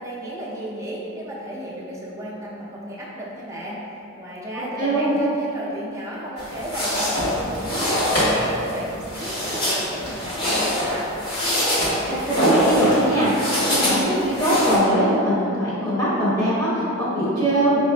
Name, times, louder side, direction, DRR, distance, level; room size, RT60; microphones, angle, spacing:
voice 1, 0.0-11.1, equal, 15° right, -6 dB, 0.6 m, -33 dB
voice 2, 4.8-5.2 12.3-17.8, right 1 dB, 15° left, -10 dB, 0.9 m, -21 dB
sound 1, 6.4-14.8, equal, 50° left, 1.3 m, -23 dB
5.1 x 2.5 x 3.3 m, 3.0 s
head